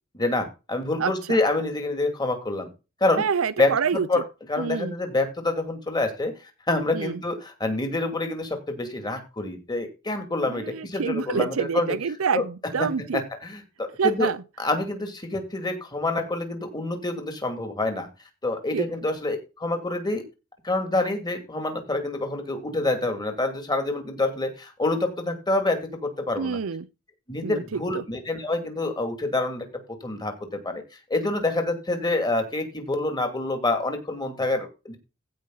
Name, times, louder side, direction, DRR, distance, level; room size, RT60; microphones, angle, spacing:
voice 1, 0.1-2.7 3.0-3.2 3.6-4.2 4.5-11.9 12.3-12.4 12.8-12.9 13.1-14.3 14.6-18.1 18.4-20.2 20.6-26.6 27.3-29.7 30.0-30.8 31.1-35.0, left 2 dB, 20° left, 2.5 m, -27 dB
voice 2, 1.0-1.4 3.2-4.1 4.6-5.0 6.9-7.2 10.5-13.2 14.0-14.4 18.7-18.9 26.4-26.9 27.4-28.0, right 6 dB, 80° right, 0.6 m, -27 dB
15.5 x 5.3 x 4.0 m
head